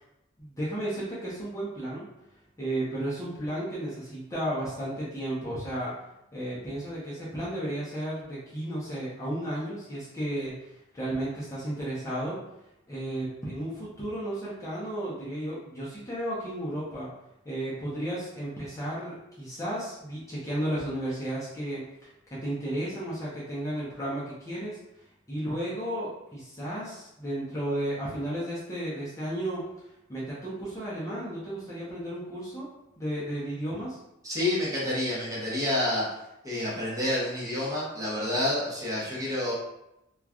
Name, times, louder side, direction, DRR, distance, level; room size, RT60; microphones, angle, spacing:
voice 1, 0.4-2.1 2.6-5.9 6.3-12.4 12.9-17.1 17.4-24.8 25.3-29.6 30.1-32.7 33.0-34.0, right 1 dB, 15° left, -8 dB, 0.6 m, -33 dB
voice 2, 34.2-36.1 36.4-39.5, left 1 dB, 15° right, -7 dB, 0.9 m, -28 dB
3.0 x 2.3 x 2.4 m, 0.87 s
head